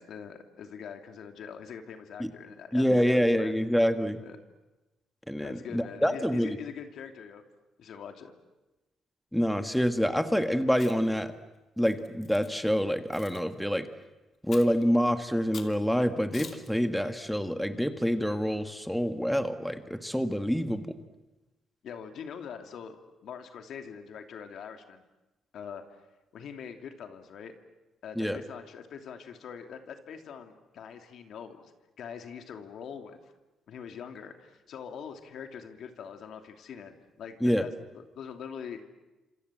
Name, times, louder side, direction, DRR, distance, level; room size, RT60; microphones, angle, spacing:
voice 1, 0.0-3.6 4.2-4.4 5.4-7.4 7.8-8.3 21.8-25.0 25.5-26.1 26.3-27.5 28.0-33.2 33.7-38.8, left 7 dB, 70° left, 6 dB, 2.8 m, -43 dB
voice 2, 2.7-4.2 5.3-6.6 9.3-11.3 11.8-13.9 14.5-20.9 28.2-28.4 37.4-37.6, equal, ahead, 8 dB, 1.7 m, -27 dB
Chewing mastication, 10.7-11.2 11.8-12.5 13.1-13.4 14.5-14.8 15.5-15.8 16.3-16.7, left 6 dB, 50° left, 2.8 m, -46 dB
28.5 x 26.5 x 7.6 m, 1.0 s
cardioid pair, 90°, 0 cm